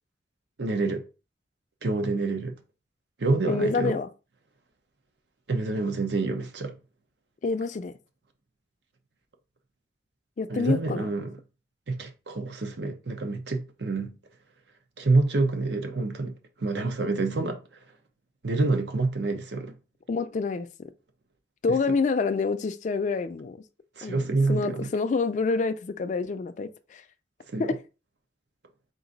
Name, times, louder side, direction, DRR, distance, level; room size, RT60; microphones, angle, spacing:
voice 1, 0.6-1.0 1.8-2.6 3.2-4.0 5.5-6.7 10.5-11.3 11.9-14.1 15.0-17.6 18.4-19.8 24.0-24.9 27.5-27.7, right 3 dB, 70° right, 0.7 m, -27 dB
voice 2, 3.5-4.1 7.4-7.9 10.4-11.1 20.1-20.7 21.6-23.6 24.0-27.0 27.6-27.8, left 4 dB, 45° left, 0.3 m, -27 dB
3.9 x 2.5 x 3.9 m
head